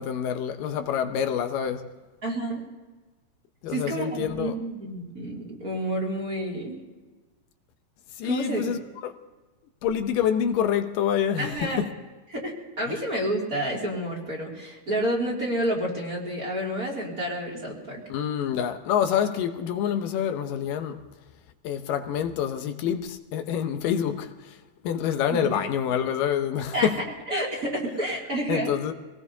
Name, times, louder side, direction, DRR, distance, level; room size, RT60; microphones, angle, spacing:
voice 1, 0.0-1.9 3.6-4.6 8.2-9.1 9.8-11.9 18.1-21.0 21.6-24.6 24.8-27.0 28.5-28.9, left 9 dB, 80° left, 2.4 m, -27 dB
voice 2, 2.2-2.6 3.7-6.7 8.2-8.6 11.4-11.8 12.3-18.0 24.1-24.2 25.3-25.6 26.7-26.9 27.3-28.7, right 1 dB, 30° right, 2.8 m, -29 dB
25.5 x 19.0 x 2.8 m
omnidirectional pair, 3.9 m